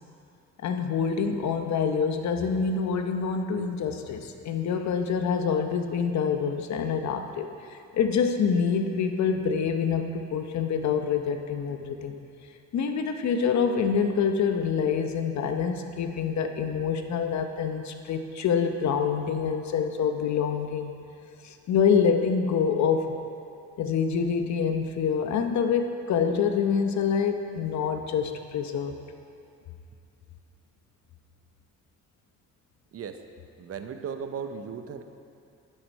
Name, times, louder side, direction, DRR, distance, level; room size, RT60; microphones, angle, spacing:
voice 1, 0.6-12.1 12.7-20.9 21.4-23.1 23.8-29.0, left 6 dB, 65° left, 6 dB, 0.8 m, -26 dB
voice 2, 33.6-35.0, right 6 dB, 50° right, 7 dB, 0.7 m, -36 dB
11.5 x 6.6 x 4.5 m, 2.5 s
cardioid pair, 90°, 30 cm